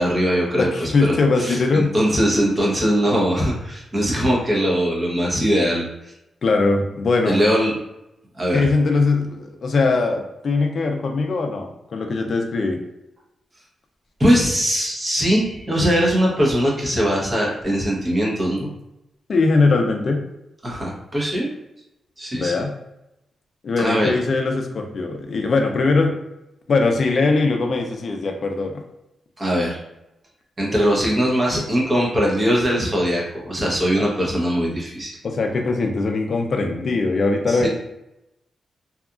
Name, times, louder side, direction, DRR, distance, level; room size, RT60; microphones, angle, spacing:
voice 1, 0.0-5.9 7.3-7.7 8.3-8.6 14.2-18.7 20.6-21.5 22.2-22.5 23.8-24.1 29.4-29.8 30.6-35.2 37.5-37.7, equal, 20° right, -3 dB, 0.7 m, -21 dB
voice 2, 0.5-1.9 6.4-7.5 8.5-12.8 19.3-20.2 22.3-22.7 23.6-26.1 26.7-28.7 34.0-34.1 35.2-37.7, left 3 dB, 45° left, 3 dB, 0.4 m, -21 dB
2.7 x 2.3 x 2.3 m, 0.88 s
wide cardioid pair, 145°, 0 cm